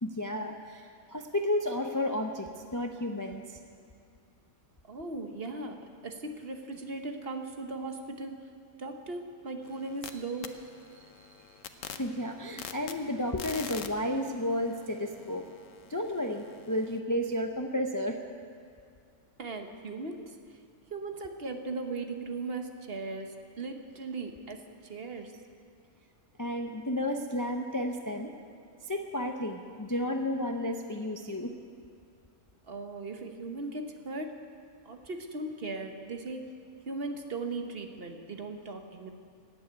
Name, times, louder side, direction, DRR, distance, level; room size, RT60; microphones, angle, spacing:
voice 1, 0.0-3.6 11.0-11.3 11.7-15.5 15.9-18.2 26.4-28.3 28.8-31.5, left 1 dB, 20° left, 4 dB, 0.5 m, -32 dB
voice 2, 4.9-8.4 8.8-10.6 19.4-20.6 20.9-25.4 32.7-34.4 34.8-36.5 36.9-39.1, right 3 dB, 45° right, 5 dB, 1.2 m, -38 dB
sound 1, 9.6-10.1 10.4-17.0, left 8 dB, 65° left, 1.1 m, -46 dB
16.5 x 8.4 x 9.3 m, 2.3 s
omnidirectional pair, 1.5 m